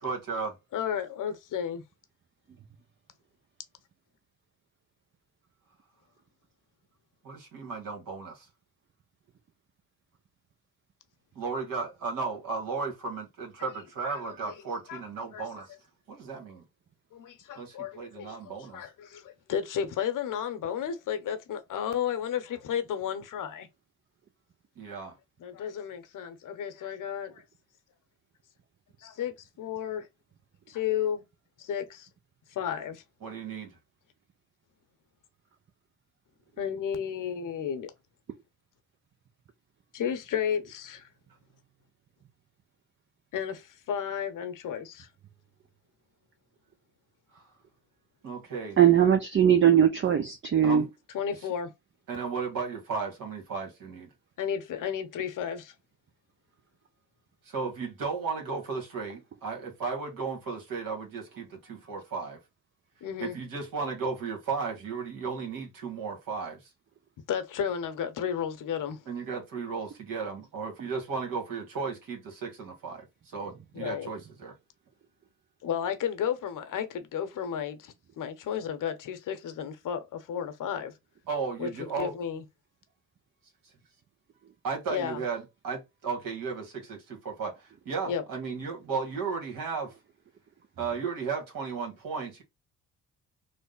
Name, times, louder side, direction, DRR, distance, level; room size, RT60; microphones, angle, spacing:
voice 1, 0.0-0.5 7.2-8.5 11.3-15.7 16.1-16.6 17.5-18.8 24.8-25.1 33.2-33.7 47.3-47.4 48.2-48.8 50.6-50.9 52.1-54.1 57.5-62.4 63.2-66.6 69.1-74.5 81.3-82.1 84.6-89.9 90.8-92.4, right 5 dB, 65° right, 1.5 m, -35 dB
voice 2, 0.7-1.8 14.0-14.5 14.9-15.0 15.3-15.4 17.1-23.7 25.4-27.4 29.0-30.1 30.7-31.2 31.6-32.1 32.5-33.0 36.6-37.9 39.9-41.1 43.3-45.1 51.1-51.7 54.4-55.7 63.0-63.4 67.3-69.0 73.7-74.1 75.6-80.9 81.6-82.4 84.9-85.2 88.0-88.2, left 8 dB, 60° left, 0.9 m, -33 dB
voice 3, 48.8-50.8, right 9 dB, 35° right, 0.6 m, -20 dB
3.2 x 2.1 x 3.8 m
hypercardioid pair, 55°, 36 cm